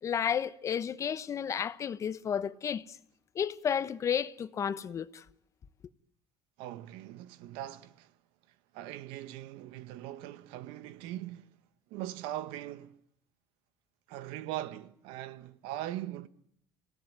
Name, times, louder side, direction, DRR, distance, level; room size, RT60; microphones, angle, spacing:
voice 1, 0.0-3.0 3.3-5.2, left 8 dB, 35° left, 1.0 m, -32 dB
voice 2, 6.6-8.1 8.7-11.6 11.9-13.0 14.1-16.3, right 13 dB, 80° right, 1.4 m, -41 dB
27.5 x 17.5 x 9.4 m
cardioid pair, 125°, 9 cm